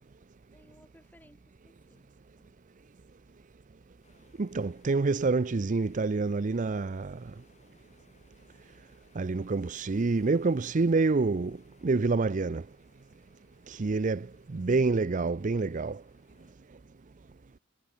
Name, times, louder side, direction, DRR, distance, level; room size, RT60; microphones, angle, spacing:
voice 1, 0.5-2.6 13.7-14.1, equal, 10° left, 5.3 m, -61 dB
sound 1, 4.0-16.5, left 3 dB, 35° left, 6.9 m, -66 dB
voice 2, 4.4-7.2 9.2-11.6 11.8-12.6 13.7-14.3 14.5-16.0, right 3 dB, 40° right, 0.5 m, -27 dB
head